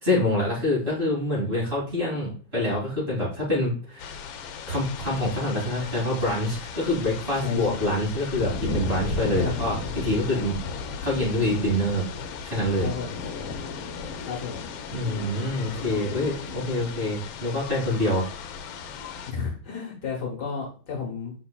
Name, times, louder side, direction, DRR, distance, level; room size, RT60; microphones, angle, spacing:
voice 1, 0.0-4.1 4.7-10.6 11.0-12.1 12.4-12.9 14.9-18.3, left 1 dB, 30° right, -4 dB, 2.7 m, -26 dB
sound 1, 4.0-19.3, left 5 dB, 90° left, 1.4 m, -35 dB
voice 2, 7.4-7.9 9.3-9.7 12.8-13.2 14.2-14.6 19.3-21.3, left 5 dB, 60° left, -2 dB, 1.7 m, -32 dB
5.8 x 4.0 x 2.3 m, 0.39 s
omnidirectional pair, 2.1 m